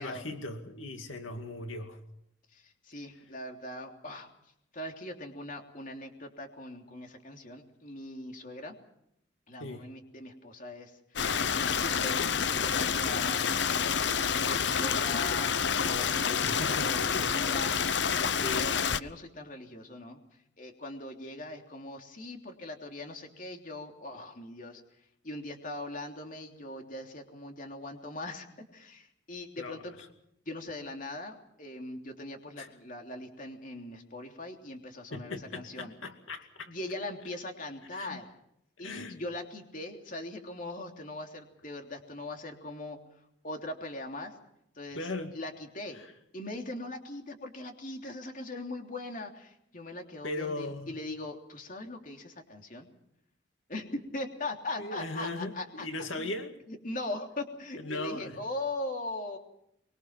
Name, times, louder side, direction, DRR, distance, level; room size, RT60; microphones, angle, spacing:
voice 1, 0.0-2.0 9.6-9.9 16.4-17.3 18.4-18.7 29.6-30.1 32.6-32.7 35.1-36.7 37.9-38.2 38.8-39.2 44.9-45.3 45.9-46.1 50.2-50.9 54.8-56.5 57.8-58.4, left 2 dB, 80° left, 5 dB, 2.4 m, -38 dB
voice 2, 2.5-4.3 4.7-8.7 9.5-13.5 14.4-20.2 20.6-24.8 25.2-28.5 28.7-30.0 30.5-35.9 36.7-38.2 38.8-43.0 43.4-44.3 44.7-45.0 45.3-46.0 46.3-52.9 53.7-56.3 56.7-59.4, left 2 dB, 40° left, 3 dB, 3.2 m, -40 dB
Stream, 11.2-19.0, left 6 dB, 60° left, 0.8 m, -28 dB
24.5 x 24.0 x 5.9 m, 0.76 s
head